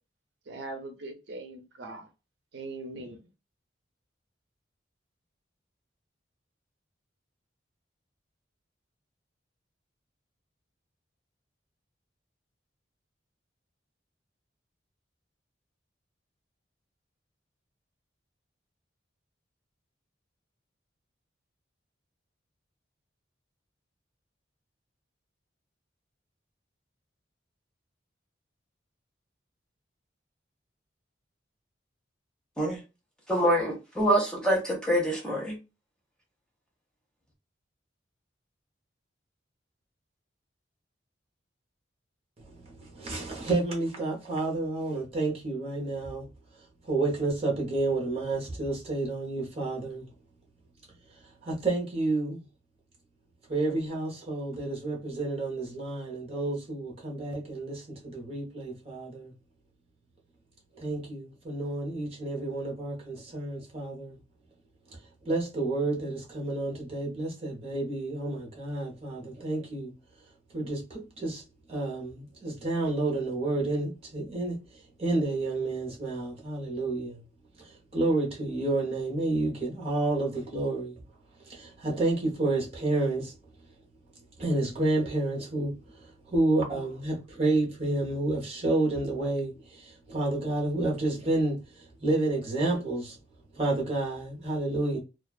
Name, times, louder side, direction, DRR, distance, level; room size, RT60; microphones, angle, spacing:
voice 1, 0.5-2.1 2.5-3.2, right 2 dB, 70° right, 0.5 m, -40 dB
voice 2, 33.3-35.6, equal, 5° left, 0.8 m, -25 dB
voice 3, 42.4-46.2 46.9-50.1 51.4-52.4 53.5-59.3 60.8-64.1 65.2-69.9 70.5-71.4 71.7-74.6 75.0-77.2 77.6-81.0 81.4-83.3 84.4-85.7 86.0-93.2 93.5-95.0, right 2 dB, 30° right, 0.9 m, -30 dB
2.3 x 2.3 x 2.3 m
head